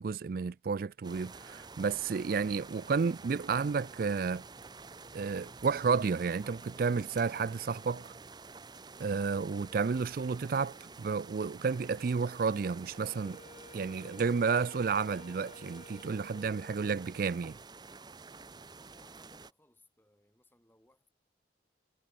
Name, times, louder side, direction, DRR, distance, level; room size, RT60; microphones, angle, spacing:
voice 1, 0.0-4.4 5.1-8.1 9.0-13.4 13.7-17.6, right 5 dB, 50° right, 0.4 m, -31 dB
sound 1, 1.0-19.5, right 4 dB, 25° right, 0.9 m, -50 dB
Wind instrument woodwind instrument, 12.9-17.3, left 2 dB, 40° left, 2.3 m, -54 dB
voice 2, 18.9-21.1, left 1 dB, 10° left, 7.2 m, -66 dB
head